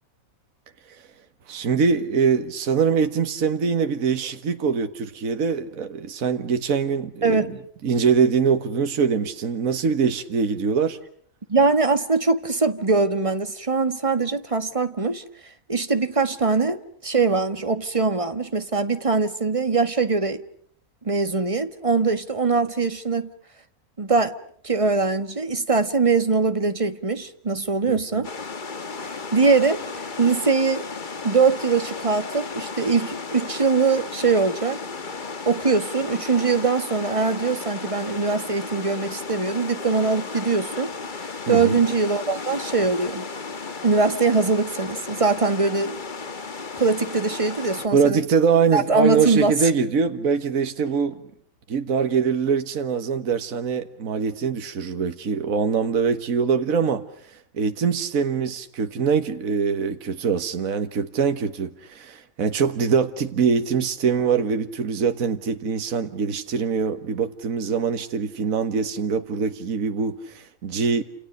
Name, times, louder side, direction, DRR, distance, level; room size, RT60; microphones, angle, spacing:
voice 1, 1.5-7.6 7.8-11.0 27.9-28.2 41.5-41.8 47.9-51.2 51.7-71.0, right 6 dB, 65° right, 1.8 m, -23 dB
voice 2, 7.2-7.5 11.5-15.2 15.7-20.4 21.0-23.3 24.0-24.3 24.6-28.3 29.3-29.8 30.2-30.8 31.2-34.8 35.4-40.9 41.5-43.3 43.8-46.0 46.8-48.2 48.7-49.5, right 4 dB, 20° right, 1.6 m, -22 dB
sound 1, 28.2-47.9, left 4 dB, 35° left, 1.4 m, -34 dB
29.5 x 28.0 x 6.6 m
omnidirectional pair, 1.6 m